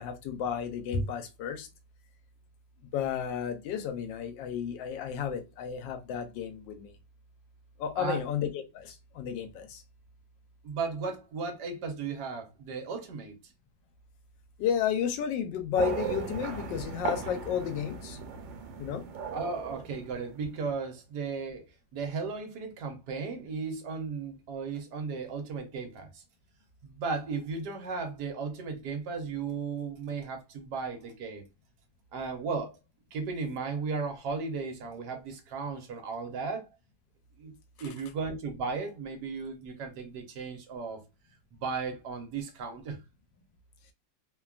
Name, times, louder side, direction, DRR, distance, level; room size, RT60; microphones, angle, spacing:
voice 1, 0.0-1.7 2.9-7.0 7.8-9.8 14.6-18.2 18.8-19.0, left 8 dB, 85° left, 1.3 m, -32 dB
voice 2, 10.6-13.3 19.3-21.6 21.9-26.2 26.8-31.4 32.1-32.8 33.1-36.7 37.4-37.5 37.8-41.0 41.5-43.0, right 4 dB, 70° right, 1.2 m, -35 dB
sound 1, 15.7-20.6, right 7 dB, 90° right, 1.3 m, -37 dB
3.1 x 2.2 x 2.3 m
omnidirectional pair, 2.0 m